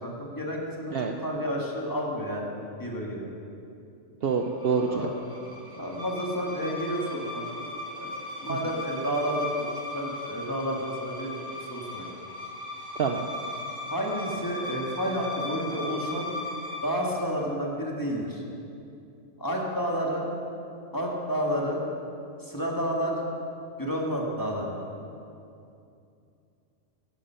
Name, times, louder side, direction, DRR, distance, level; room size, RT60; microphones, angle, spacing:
voice 1, 0.0-3.2 4.8-5.1 5.7-7.6 8.0-8.1 8.4-12.1 13.9-16.3 16.8-18.4 19.4-20.3 20.9-21.8 22.4-23.2 23.8-24.8, equal, 15° left, -2 dB, 1.7 m, -30 dB
voice 2, 4.2-5.1 13.0-13.2, right 5 dB, 60° right, 4 dB, 0.8 m, -26 dB
sound 1, 4.4-17.1, left 2 dB, 30° right, 2.0 m, -38 dB
12.5 x 10.5 x 5.6 m, 2.6 s
omnidirectional pair, 1.3 m